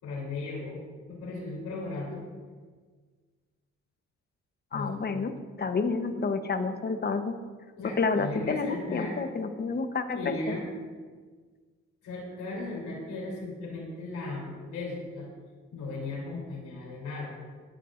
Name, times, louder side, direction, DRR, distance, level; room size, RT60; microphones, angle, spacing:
voice 1, 0.0-0.8 1.1-2.3 4.7-5.2 7.8-9.2 10.2-10.6 12.0-15.3 15.7-17.3, left 2 dB, 85° left, -3 dB, 3.4 m, -36 dB
voice 2, 4.7-5.3 5.6-7.3 8.0-10.6, left 4 dB, 35° left, 8 dB, 0.9 m, -29 dB
19.0 x 10.0 x 2.6 m, 1.5 s
cardioid pair, 90°, 30 cm